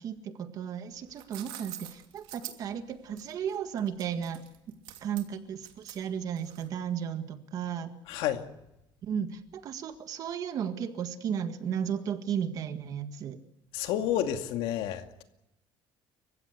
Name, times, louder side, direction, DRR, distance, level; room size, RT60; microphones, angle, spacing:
voice 1, 0.0-4.4 5.0-7.9 9.0-13.4, right 8 dB, 40° right, 8 dB, 1.7 m, -34 dB
sound 1, 0.9-6.9, right 13 dB, 75° right, 2.9 m, -46 dB
voice 2, 8.1-8.5 13.7-15.2, left 11 dB, 85° left, 6 dB, 2.4 m, -30 dB
29.5 x 15.5 x 8.1 m, 0.86 s
cardioid pair, 180°, 9 cm